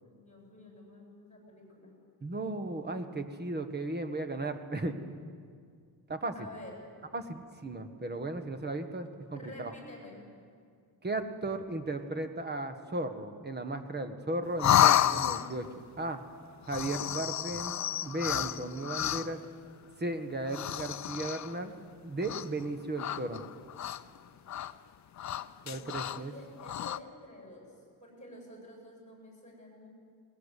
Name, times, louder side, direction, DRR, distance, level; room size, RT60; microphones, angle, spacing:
voice 1, 0.0-1.9 6.3-6.8 9.3-10.2 25.7-27.7 28.0-29.9, left 1 dB, 20° left, -1 dB, 8.0 m, -50 dB
voice 2, 2.2-5.0 6.1-6.5 7.1-9.7 11.0-15.7 16.0-16.2 16.7-17.7 18.0-19.4 20.0-21.7 22.0-23.4 25.6-26.3, right 2 dB, 25° right, 8 dB, 1.5 m, -35 dB
sound 1, 14.6-15.7 16.6-19.5 20.4-21.6 22.2-22.7 23.0-24.2 24.5-24.7 25.2-26.2 26.6-27.0, left 11 dB, 45° left, 0.6 m, -30 dB
20.5 x 19.5 x 8.3 m, 2.1 s
cardioid pair, 125°, 40 cm